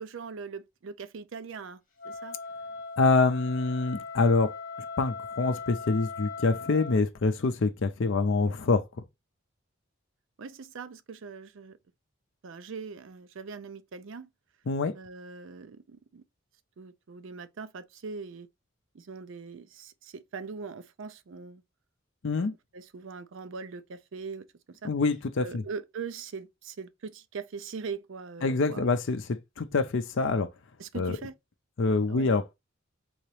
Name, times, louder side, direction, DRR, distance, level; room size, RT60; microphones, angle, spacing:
voice 1, 0.0-2.4 10.4-11.8 12.4-14.3 14.9-16.2 16.8-18.5 18.9-21.6 22.4-22.5 22.7-24.9 25.4-28.9 30.8-31.4 32.1-32.3, right 5 dB, 60° right, 0.4 m, -41 dB
Wind instrument woodwind instrument, 2.0-7.0, left 4 dB, 40° left, 1.3 m, -40 dB
voice 2, 3.0-4.5 5.0-8.8 14.7-14.9 22.2-22.5 24.8-25.6 28.4-30.5 30.9-31.2 31.8-32.5, left 3 dB, 60° left, 0.5 m, -26 dB
3.9 x 2.8 x 3.2 m
head